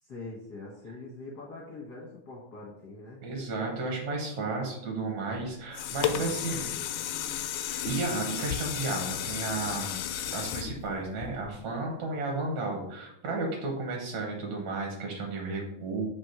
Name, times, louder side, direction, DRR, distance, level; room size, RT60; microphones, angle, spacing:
voice 1, 0.0-3.2 6.0-6.9, left 2 dB, 70° left, -3 dB, 0.9 m, -44 dB
voice 2, 3.2-6.7 7.7-10.1 10.3-16.1, right 3 dB, 75° right, 0 dB, 2.4 m, -33 dB
sound 1, 5.4-11.8 12.3-12.4, left 10 dB, 85° left, 2.0 m, -33 dB
6.2 x 2.9 x 5.7 m, 0.77 s
omnidirectional pair, 3.4 m